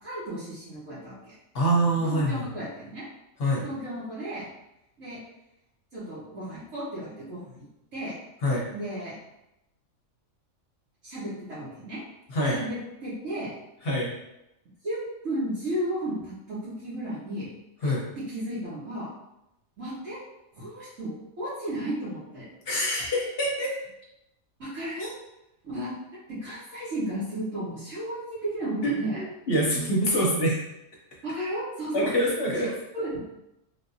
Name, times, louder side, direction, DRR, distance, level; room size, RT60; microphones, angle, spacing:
voice 1, 0.0-1.2 2.0-3.0 3.6-4.5 5.0-5.2 5.9-7.7 7.9-8.1 8.7-9.1 11.0-12.0 12.5-13.5 14.8-17.5 17.8-19.1 19.8-20.2 20.5-22.4 24.6-25.1 25.6-25.9 26.3-29.2 30.2-30.3 31.2-32.1 32.6-33.2, right 1 dB, 70° right, -13 dB, 1.5 m, -34 dB
voice 2, 1.5-2.4 3.4-3.6 8.4-8.6 12.3-12.6 13.8-14.1 17.8-18.0 22.7-23.8 25.0-25.1 28.8-30.6 31.9-32.7, equal, 50° left, -3 dB, 0.9 m, -25 dB
3.4 x 2.6 x 2.6 m, 0.88 s
omnidirectional pair, 1.4 m